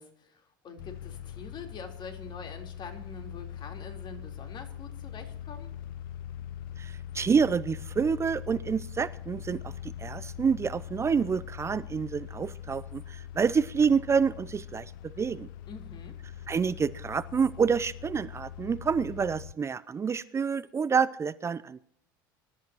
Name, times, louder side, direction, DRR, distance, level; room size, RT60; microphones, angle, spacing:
voice 1, 0.0-5.7 15.7-16.2, left 4 dB, 45° left, 4 dB, 3.8 m, -45 dB
sound 1, 0.8-19.5, left 10 dB, 70° left, 0.5 m, -42 dB
voice 2, 6.8-15.5 16.5-21.8, right 6 dB, 25° right, 17 dB, 0.6 m, -28 dB
24.5 x 13.0 x 3.0 m, 0.67 s
hypercardioid pair, 75°, 11 cm